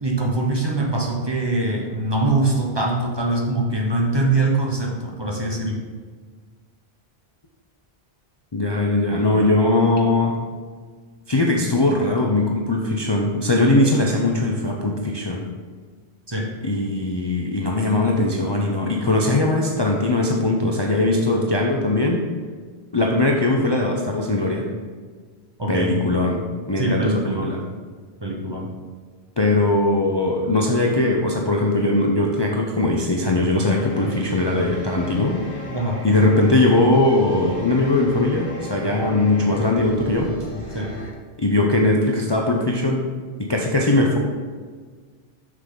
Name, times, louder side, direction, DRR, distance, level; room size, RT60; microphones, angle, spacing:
voice 1, 0.0-5.8 16.3-16.5 25.6-25.9 26.8-27.5 28.2-28.7 35.7-36.0 40.7-40.9, right 2 dB, 25° right, -1 dB, 1.0 m, -23 dB
voice 2, 8.5-10.4 11.3-15.5 16.6-22.2 22.9-24.7 25.7-27.6 29.4-35.3 36.0-40.3 41.4-43.0 43.4-44.2, left 2 dB, 30° left, -1 dB, 0.6 m, -20 dB
sound 1, 33.6-41.1, left 1 dB, 80° left, 1.8 m, -35 dB
6.7 x 6.7 x 3.8 m, 1.5 s
omnidirectional pair, 1.1 m